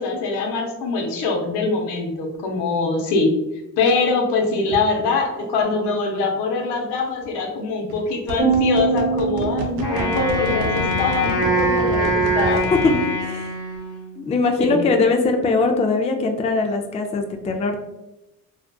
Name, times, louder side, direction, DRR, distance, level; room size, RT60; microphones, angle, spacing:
voice 1, 0.0-3.3 3.8-12.6 14.6-14.9, left 3 dB, 80° left, 1 dB, 0.7 m, -23 dB
sound 1, 4.7-4.9 7.2-7.4 7.9-13.0, right 2 dB, 65° right, 0.6 m, -29 dB
sound 2, 8.4-10.8, right 5 dB, 10° right, 1.0 m, -23 dB
Wind instrument woodwind instrument, 9.8-14.2, right 1 dB, 40° left, 1.0 m, -23 dB
voice 2, 12.8-13.5 14.2-17.8, left 3 dB, 20° left, 4 dB, 0.3 m, -21 dB
2.4 x 2.4 x 2.2 m, 0.96 s
supercardioid pair, 60°, 41 cm